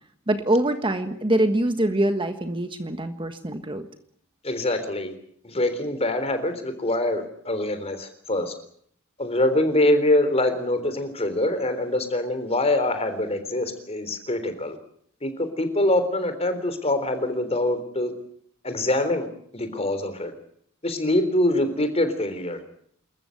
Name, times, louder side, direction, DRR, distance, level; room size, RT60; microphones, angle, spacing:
voice 1, 0.3-3.9, right 1 dB, 25° right, 8 dB, 1.4 m, -24 dB
voice 2, 4.4-5.1 5.4-8.5 9.2-14.8 15.2-18.1 18.6-19.3 19.5-20.3 20.8-22.6, left 1 dB, 30° left, 9 dB, 3.7 m, -24 dB
27.5 x 14.5 x 9.3 m, 0.66 s
head